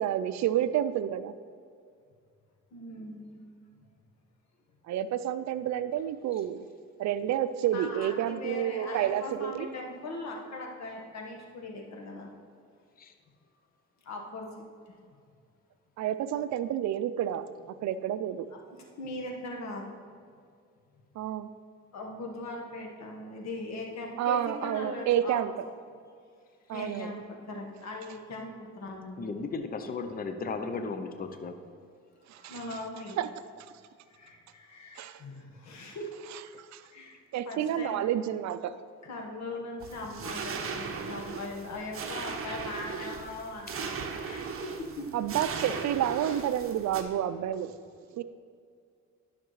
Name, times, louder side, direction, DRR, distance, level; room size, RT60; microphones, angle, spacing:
voice 1, 0.0-1.3 4.9-6.7 7.0-9.7 16.0-18.5 21.1-21.5 24.2-25.5 26.7-27.1 32.3-32.8 33.2-33.3 35.0-35.2 36.3-36.9 37.3-38.8 45.1-47.7 48.2-48.3, right 10 dB, 65° right, 13 dB, 0.4 m, -30 dB
voice 2, 2.7-3.4 7.7-12.3 14.0-14.9 18.7-20.0 21.9-25.6 26.7-29.2 32.3-33.2 34.1-36.0 36.9-37.2 37.4-38.0 39.0-44.4 45.0-45.3, left 2 dB, 60° left, 0 dB, 1.5 m, -40 dB
voice 3, 29.2-31.6 42.7-43.1 43.8-44.4, left 4 dB, 30° left, 7 dB, 0.6 m, -36 dB
sound 1, 39.8-47.0, right 5 dB, 45° right, 0.8 m, -37 dB
11.5 x 5.9 x 3.2 m, 2.2 s
cardioid pair, 90°, 30 cm